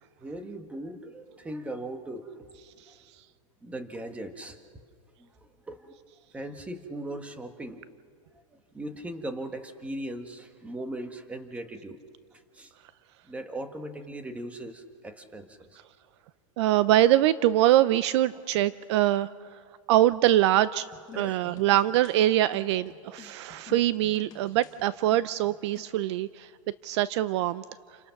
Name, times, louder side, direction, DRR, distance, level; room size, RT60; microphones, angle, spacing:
voice 1, 0.2-2.5 3.6-4.6 5.2-6.0 6.3-7.8 8.3-12.0 12.3-12.7 13.3-15.8 21.1-21.4 23.2-23.3, right 1 dB, 10° right, 6 dB, 1.5 m, -39 dB
voice 2, 16.6-19.6 19.9-20.9 21.2-26.5 26.8-27.6, right 13 dB, 55° right, 16 dB, 0.5 m, -23 dB
sound 1, 20.9-26.0, left 9 dB, 25° left, 1.7 m, -51 dB
29.0 x 26.5 x 6.0 m, 2.1 s
supercardioid pair, 145°, 17 cm